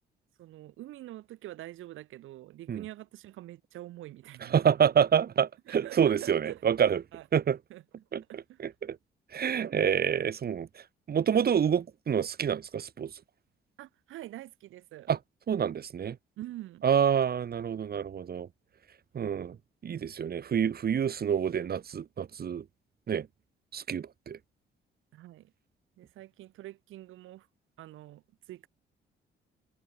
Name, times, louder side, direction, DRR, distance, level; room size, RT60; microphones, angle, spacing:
voice 1, 0.4-4.9 5.7-6.6 7.1-7.3 7.7-7.8 8.3-8.7 13.8-15.1 16.4-16.8 25.1-25.5 26.0-27.5 27.8-28.7, right 15 dB, 85° right, 5.1 m, -45 dB
voice 2, 4.5-7.0 7.3-7.6 8.1-8.2 8.6-9.0 9.3-10.7 11.1-13.1 15.1-15.2 15.5-16.2 16.8-18.5 19.1-19.6 19.8-22.6 23.1-23.3 23.7-24.4, right 8 dB, 50° right, 2.3 m, -27 dB
cardioid pair, 90°, 20 cm